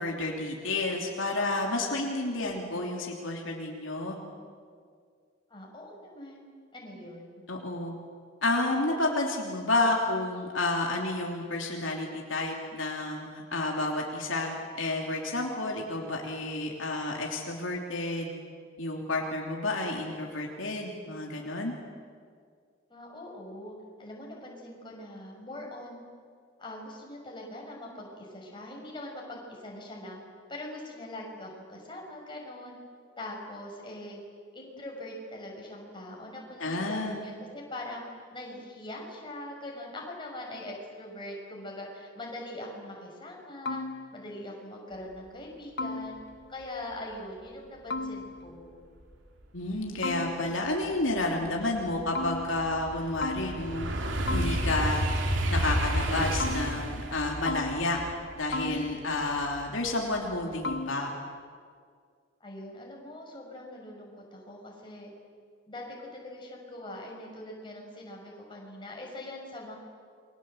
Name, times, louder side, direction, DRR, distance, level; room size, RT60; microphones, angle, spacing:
voice 1, 0.0-4.2 7.5-7.9 8.4-18.3 18.8-21.7 36.6-37.2 49.5-53.9 54.3-55.0 55.5-58.0 58.3-61.1, left 2 dB, 75° left, 0 dB, 3.3 m, -30 dB
voice 2, 5.5-7.4 22.9-26.1 26.6-30.2 30.5-32.8 33.2-34.2 34.5-38.0 38.3-46.2 46.5-48.7 62.4-65.1 65.7-69.8, left 1 dB, 25° left, -1 dB, 6.5 m, -42 dB
sound 1, 43.7-44.4 45.8-46.6 47.9-48.7 50.0-50.8 52.2-52.9 53.2-54.0 54.3-55.1 56.4-57.2 57.5-58.3 58.5-59.3 60.6-61.3, left 2 dB, 55° left, 0.9 m, -36 dB
sound 2, 50.3-50.4 50.8-59.9 60.3-60.7, right 1 dB, 65° right, 2.9 m, -31 dB
29.0 x 23.5 x 8.1 m, 2.1 s
head